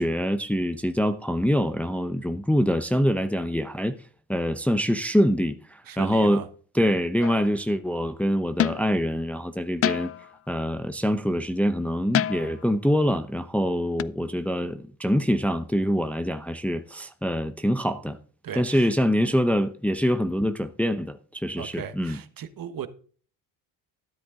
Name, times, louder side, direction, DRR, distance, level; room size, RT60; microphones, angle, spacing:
voice 1, 0.0-4.0 4.3-6.4 6.7-10.1 10.5-18.2 18.6-22.2, equal, 5° left, 0.8 m, -25 dB
voice 2, 5.9-6.5 18.4-18.9 21.6-22.9, right 8 dB, 50° right, 1.4 m, -37 dB
sound 1, 7.2-7.6 8.6-9.0 9.8-10.3 12.1-12.7 14.0-14.1, left 11 dB, 35° left, 0.4 m, -27 dB
13.0 x 7.8 x 3.7 m
cardioid pair, 85°, 45 cm